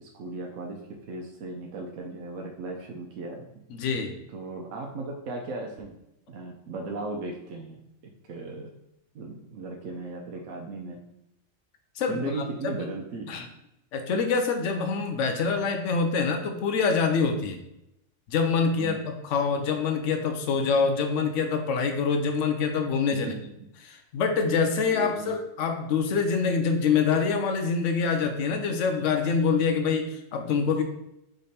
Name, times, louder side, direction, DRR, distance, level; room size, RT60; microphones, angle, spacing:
voice 1, 0.0-3.5 4.3-5.9 6.3-7.8 8.3-8.7 9.1-11.0 12.1-13.4 18.8-19.1 23.1-23.4 24.9-25.3, right 3 dB, 80° right, 0 dB, 1.0 m, -37 dB
voice 2, 3.7-4.2 12.0-12.3 12.6-12.8 13.3-13.5 13.9-17.6 18.3-23.3 23.8-30.8, left 5 dB, 70° left, 5 dB, 1.0 m, -25 dB
3.8 x 3.3 x 4.1 m, 0.84 s
omnidirectional pair, 1.3 m